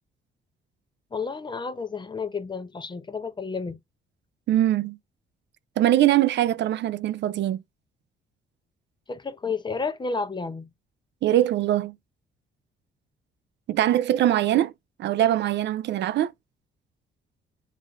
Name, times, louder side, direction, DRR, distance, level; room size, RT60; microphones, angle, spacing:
voice 1, 1.1-3.8 9.1-10.7, left 4 dB, 25° left, 0.6 m, -31 dB
voice 2, 4.5-5.0 5.8-7.6 11.2-11.9 13.7-14.7 15.0-16.3, right 13 dB, 65° right, 0.4 m, -22 dB
7.2 x 2.5 x 2.3 m
cardioid pair, 90°, 20 cm